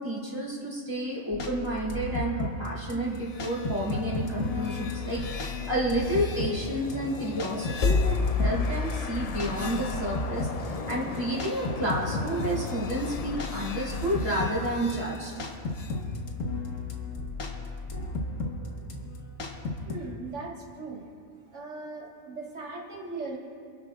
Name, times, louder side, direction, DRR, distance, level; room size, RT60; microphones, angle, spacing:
voice 1, 0.0-15.3, right 1 dB, 20° right, -6 dB, 3.4 m, -30 dB
sound 1, 1.3-19.9, left 2 dB, 85° left, 1.6 m, -35 dB
sound 2, 3.1-16.0, left 4 dB, 50° left, 0.4 m, -34 dB
voice 2, 19.9-21.1 21.5-23.4, right 3 dB, 65° right, -3 dB, 2.0 m, -38 dB
28.0 x 11.0 x 2.4 m, 2.2 s
omnidirectional pair, 1.3 m